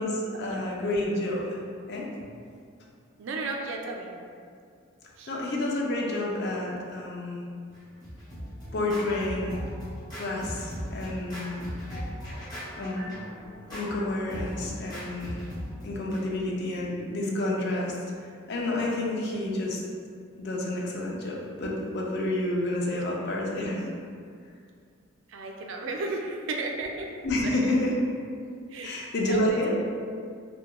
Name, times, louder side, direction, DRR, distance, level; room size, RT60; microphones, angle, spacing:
voice 1, 0.0-1.6 1.9-2.1 5.3-7.4 8.7-9.6 10.1-11.6 12.8-13.1 13.7-15.4 15.8-17.9 18.5-19.8 20.4-23.9 27.2-28.0 28.8-29.7, left 1 dB, 50° left, -2 dB, 0.4 m, -29 dB
voice 2, 3.2-4.1 5.2-5.3 25.3-27.1 27.5-27.7 28.7-29.0 29.2-29.6, right 3 dB, 65° right, 1 dB, 0.3 m, -34 dB
Scratching (performance technique), 7.7-16.2, equal, 20° left, 0.7 m, -38 dB
2.9 x 2.1 x 2.2 m, 2.2 s
head